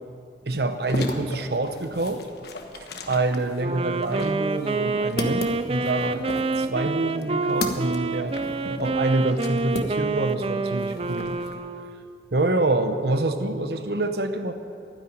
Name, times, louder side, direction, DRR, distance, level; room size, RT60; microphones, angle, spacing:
voice 1, 0.4-2.3 2.7-6.3 6.6-11.4 12.3-14.5, right 2 dB, 70° right, 9 dB, 0.9 m, -26 dB
sound 1, 0.7-10.4 10.7-11.5, left 2 dB, 70° left, 1.2 m, -35 dB
Wind instrument woodwind instrument, 3.6-12.2, right 3 dB, 35° right, 0.5 m, -27 dB
12.5 x 10.0 x 9.3 m, 2.5 s
head